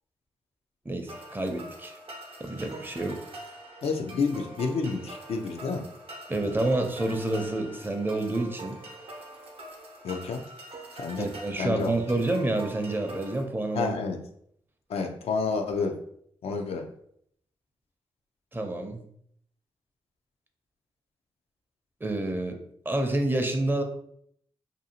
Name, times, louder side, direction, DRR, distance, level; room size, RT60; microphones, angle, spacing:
voice 1, 0.9-1.9 2.4-3.2 6.3-8.8 11.2-13.9 18.5-19.0 22.0-22.6 22.9-23.8, right 2 dB, 20° right, 4 dB, 0.5 m, -28 dB
sound 1, 1.1-13.4, right 1 dB, 65° right, 0.6 m, -44 dB
voice 2, 3.8-5.9 10.0-10.4 11.0-11.3 11.6-11.9 13.7-14.2 14.9-16.0 16.4-16.9, left 4 dB, 75° left, 4 dB, 0.4 m, -29 dB
2.6 x 2.3 x 2.8 m, 0.68 s
cardioid pair, 60°, 10 cm